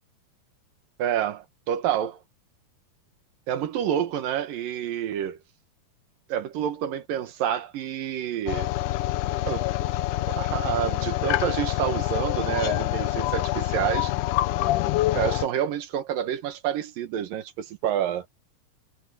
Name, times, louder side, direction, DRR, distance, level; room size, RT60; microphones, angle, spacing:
voice 1, 1.0-2.2 3.5-5.4 6.3-8.7 9.5-9.9 10.3-14.1 15.1-18.3, right 10 dB, 75° right, 3.0 m, -28 dB
sound 1, 8.5-15.5, left 15 dB, 75° left, 2.0 m, -26 dB
omnidirectional pair, 4.1 m